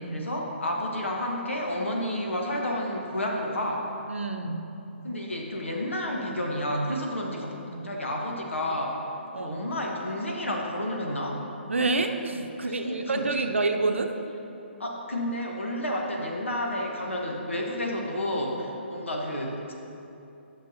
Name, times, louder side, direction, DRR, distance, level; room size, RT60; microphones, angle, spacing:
voice 1, 0.0-3.9 5.0-9.1 9.4-11.4 12.6-13.2 14.8-19.7, left 1 dB, 80° left, 0 dB, 1.4 m, -31 dB
voice 2, 4.1-4.7 7.7-7.9 9.3-9.6 11.7-14.1, right 3 dB, 80° right, 5 dB, 0.7 m, -28 dB
12.0 x 6.4 x 2.8 m, 2.9 s
figure-of-eight pair, 140°, 7 cm